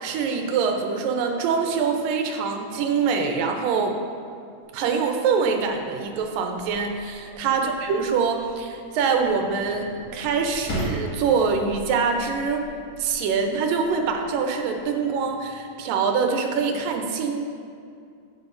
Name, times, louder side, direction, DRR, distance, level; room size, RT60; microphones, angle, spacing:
voice 1, 0.0-4.0 4.7-12.7 13.0-17.5, right 5 dB, 75° right, 3 dB, 2.3 m, -24 dB
sound 1, 4.6-15.6, equal, 50° left, 2.9 m, -39 dB
11.0 x 9.0 x 2.6 m, 2.3 s
omnidirectional pair, 4.2 m